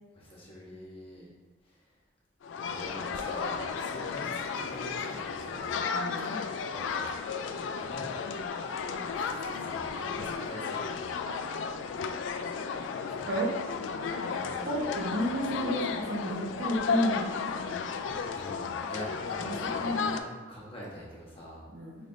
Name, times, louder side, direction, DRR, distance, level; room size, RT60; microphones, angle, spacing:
voice 1, 0.1-1.3 2.7-4.4 4.7-5.8 6.7-7.1 7.8-8.2 9.1-11.1 14.4-14.7 18.3-21.6, equal, 30° left, -6 dB, 1.1 m, -44 dB
sound 1, 2.4-20.2, left 5 dB, 75° left, 0.3 m, -34 dB
voice 2, 5.9-6.4 9.2-9.3 10.4-10.5 13.3-13.7 14.0-14.4 14.7-17.5 18.1-18.2 19.4-20.2 21.7-22.1, equal, 65° right, -3 dB, 0.9 m, -33 dB
5.1 x 3.2 x 2.6 m, 1.4 s
head